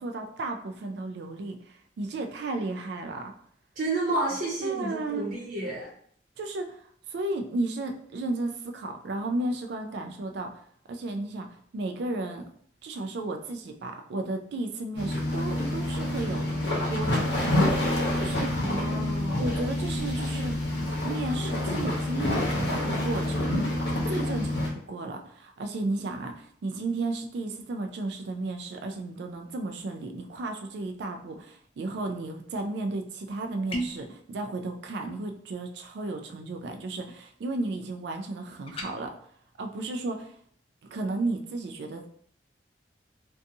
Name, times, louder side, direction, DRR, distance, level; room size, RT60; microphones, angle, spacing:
voice 1, 0.0-3.3 4.6-5.3 6.4-10.6 10.9-11.5 11.7-12.5 12.8-16.5 16.9-17.6 18.1-18.6 19.4-20.6 21.0-23.5 23.9-39.1 39.6-40.3 40.9-42.1, right 2 dB, 65° right, 4 dB, 0.3 m, -33 dB
voice 2, 3.8-5.9 18.5-19.5, right 2 dB, 50° right, -7 dB, 0.8 m, -31 dB
sound 1, 15.0-24.7, left 1 dB, 75° left, 0.8 m, -27 dB
sound 2, 33.7-34.1 38.7-38.9, equal, 30° left, 0.3 m, -33 dB
2.6 x 2.3 x 2.6 m, 0.62 s
head